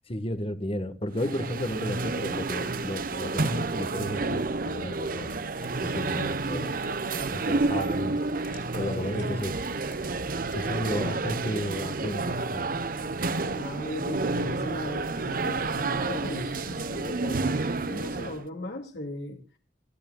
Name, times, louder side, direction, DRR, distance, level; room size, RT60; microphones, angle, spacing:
voice 1, 0.1-5.3 5.8-6.8 7.2-8.2 8.7-9.5 10.5-12.7 13.0-13.1, left 1 dB, 30° left, 1.4 m, -33 dB
sound 1, 1.1-18.4, right 3 dB, 50° right, 0.9 m, -30 dB
sound 2, 5.1-11.3, left 1 dB, 50° left, 3.2 m, -52 dB
voice 2, 13.5-19.4, left 1 dB, 70° left, 2.4 m, -37 dB
27.5 x 12.0 x 2.3 m
head